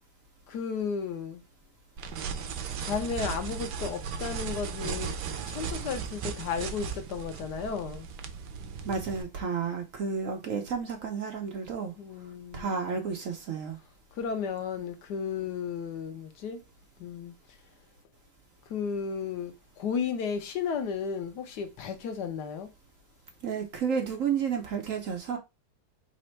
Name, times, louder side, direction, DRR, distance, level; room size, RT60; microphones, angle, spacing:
voice 1, 0.5-1.4 2.8-8.1 12.0-13.0 14.1-16.6 17.0-17.3 18.7-22.7, left 6 dB, 75° left, 1.4 m, -34 dB
sound 1, 2.0-9.2, right 6 dB, 80° right, 1.3 m, -36 dB
voice 2, 8.8-11.9 12.5-13.8 23.4-25.4, right 6 dB, 60° right, 1.0 m, -31 dB
4.3 x 2.6 x 4.4 m
omnidirectional pair, 1.9 m